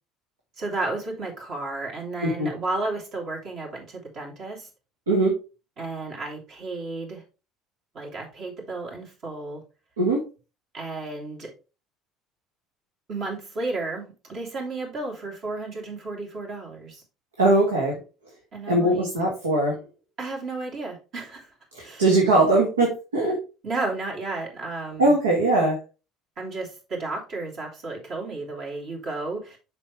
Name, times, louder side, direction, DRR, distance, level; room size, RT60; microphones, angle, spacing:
voice 1, 0.6-4.7 5.8-7.2 7.9-9.6 10.7-11.5 13.1-17.0 18.5-19.1 20.2-21.5 21.8-22.0 23.6-25.1 26.4-29.6, right 3 dB, 50° right, 3.0 m, -33 dB
voice 2, 17.4-18.0 18.7-19.8 21.7-23.4 25.0-25.8, right 2 dB, 80° right, 1.6 m, -21 dB
7.3 x 5.6 x 3.3 m
figure-of-eight pair, 60°, 0 cm